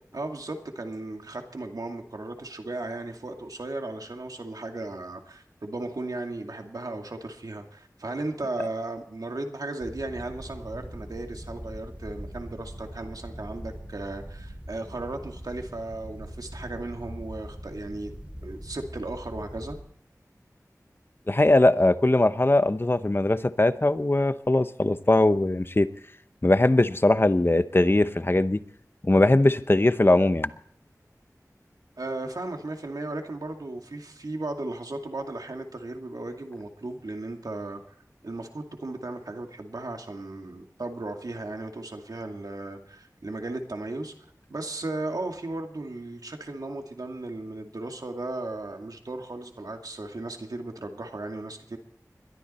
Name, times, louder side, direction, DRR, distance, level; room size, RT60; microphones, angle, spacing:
voice 1, 0.1-18.1 18.4-19.8 32.0-38.0 38.2-44.1 44.5-51.8, right 2 dB, 90° right, 3 dB, 2.3 m, -36 dB
sound 1, 9.8-19.8, equal, 20° right, 6.2 m, -41 dB
voice 2, 21.3-25.9 26.4-28.6 29.0-30.5, left 2 dB, 35° left, 12 dB, 0.9 m, -21 dB
21.5 x 13.5 x 4.3 m, 0.65 s
wide cardioid pair, 45°, 6 cm